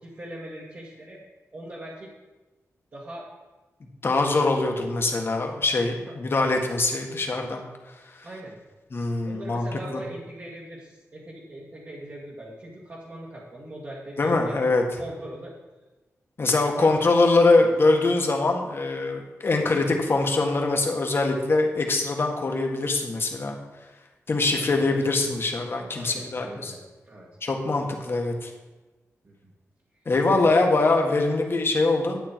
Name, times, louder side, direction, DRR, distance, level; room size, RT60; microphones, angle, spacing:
voice 1, 0.0-1.2 1.5-2.1 2.9-3.3 8.2-8.6 9.2-14.6 15.0-15.6 16.7-17.1 17.6-17.7 24.3-25.1 26.0-26.8 27.1-27.3 27.7-27.8 29.2-29.5, right 1 dB, 40° right, -6 dB, 1.9 m, -41 dB
voice 2, 4.0-7.6 8.9-10.0 14.2-14.8 16.4-23.6 24.3-26.7 27.4-28.5 30.0-32.2, left 3 dB, 45° left, 2 dB, 1.6 m, -23 dB
11.5 x 8.8 x 4.6 m, 1.2 s
wide cardioid pair, 120°, 5 cm